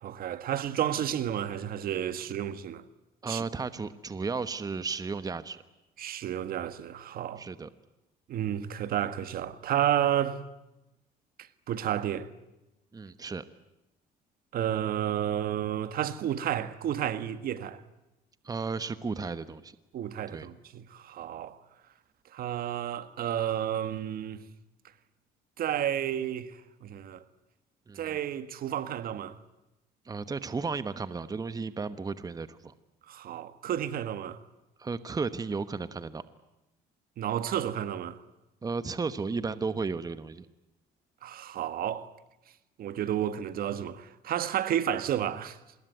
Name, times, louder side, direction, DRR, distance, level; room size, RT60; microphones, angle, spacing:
voice 1, 0.0-2.8 3.3-3.4 6.0-7.4 8.3-10.4 11.7-12.3 14.5-17.8 19.9-21.6 22.3-24.4 25.6-27.2 28.0-29.4 33.1-34.4 37.2-38.2 41.2-42.1 42.8-45.6, right 10 dB, 60° right, 1.7 m, -31 dB
voice 2, 3.2-5.6 7.4-7.7 12.9-13.4 18.4-19.7 20.3-20.5 27.9-28.2 30.1-32.7 34.8-36.2 38.6-40.5, right 4 dB, 20° right, 1.2 m, -34 dB
26.0 x 21.0 x 9.4 m
cardioid pair, 110°, 17 cm